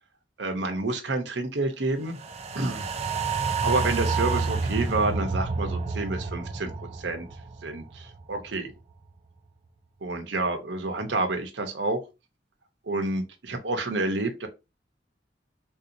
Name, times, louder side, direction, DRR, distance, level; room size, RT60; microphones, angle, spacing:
voice 1, 0.4-2.2 2.5-2.8 3.6-7.3 7.6-8.7 10.0-12.0 12.9-14.5, right 2 dB, 80° right, 6 dB, 0.8 m, -29 dB
sound 1, 2.2-8.6 8.9-9.0, right 4 dB, 35° right, 0.4 m, -29 dB
3.6 x 2.8 x 2.6 m, 0.26 s
head